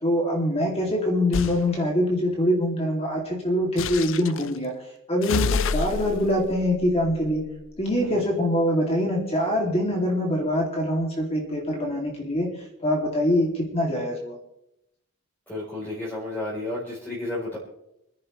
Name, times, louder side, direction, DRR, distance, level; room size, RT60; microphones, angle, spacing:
voice 1, 0.0-4.7 5.1-7.4 7.8-12.5 12.8-14.4, left 1 dB, 25° left, 0 dB, 2.6 m, -24 dB
sound 1, 1.3-1.6 3.8-4.5 5.2-7.8, left 5 dB, 60° left, 0.5 m, -29 dB
voice 2, 15.5-17.6, left 2 dB, 10° left, -7 dB, 3.7 m, -31 dB
27.0 x 10.0 x 3.2 m, 0.82 s
head